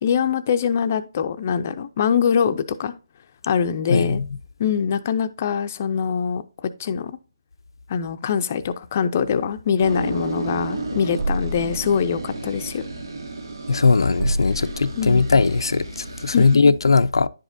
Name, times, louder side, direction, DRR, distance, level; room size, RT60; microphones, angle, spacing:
voice 1, 0.0-2.9 3.5-4.2 4.6-7.2 7.9-12.9 15.0-15.2 16.3-16.7, left 7 dB, 30° left, 0.5 m, -23 dB
voice 2, 3.9-4.2 13.7-17.3, left 4 dB, 85° left, 0.4 m, -19 dB
sound 1, 9.8-16.6, right 2 dB, 80° right, 2.2 m, -30 dB
10.0 x 5.0 x 2.6 m
hypercardioid pair, 170°, 2 cm